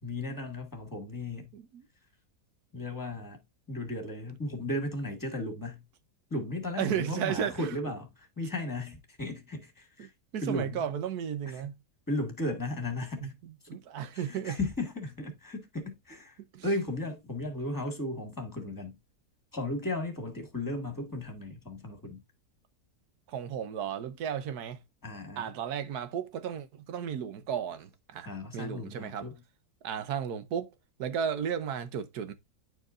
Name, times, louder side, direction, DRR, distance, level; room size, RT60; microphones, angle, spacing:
voice 1, 0.0-1.5 2.7-3.4 3.7-5.8 6.3-10.1 10.4-10.9 11.5-11.6 12.1-13.4 14.1-16.4 16.6-19.0 19.5-22.2 25.0-25.5 28.2-29.4, left 1 dB, 10° left, 1.9 m, -35 dB
voice 2, 1.5-1.8 6.8-7.7 10.0-11.8 13.2-14.6 16.5-16.6 23.3-24.8 25.4-29.3 29.8-30.7 31.0-32.3, right 8 dB, 75° right, 1.4 m, -34 dB
10.5 x 4.6 x 2.5 m
omnidirectional pair, 1.7 m